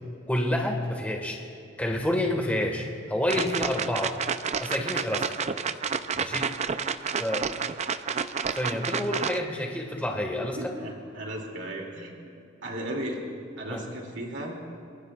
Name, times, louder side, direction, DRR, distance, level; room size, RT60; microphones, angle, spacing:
voice 1, 0.3-1.4 1.8-4.2 4.6-5.3 6.1-6.5 7.2-7.5 8.5-10.7 13.7-13.8, left 1 dB, 10° left, 1 dB, 1.6 m, -28 dB
sound 1, 3.3-9.4, right 6 dB, 35° right, 0.5 m, -30 dB
voice 2, 10.6-12.1 12.6-13.2 13.6-14.6, right 1 dB, 65° right, 0 dB, 2.6 m, -35 dB
30.0 x 20.0 x 2.4 m, 2.5 s
head